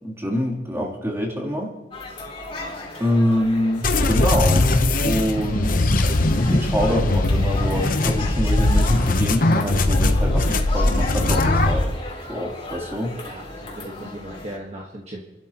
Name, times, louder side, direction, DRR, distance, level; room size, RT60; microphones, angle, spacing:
voice 1, 0.0-1.7 3.0-4.7 5.0-5.8 6.5-12.0 12.3-13.2 13.8-14.1, equal, 15° right, -4 dB, 3.1 m, -25 dB
sound 1, 1.9-14.6, left 2 dB, 30° left, 3.1 m, -36 dB
sound 2, 3.8-11.8, left 2 dB, 50° left, 0.9 m, -20 dB
voice 2, 13.1-15.2, right 1 dB, 35° right, -2 dB, 1.4 m, -37 dB
28.5 x 12.5 x 3.0 m, 1.2 s
head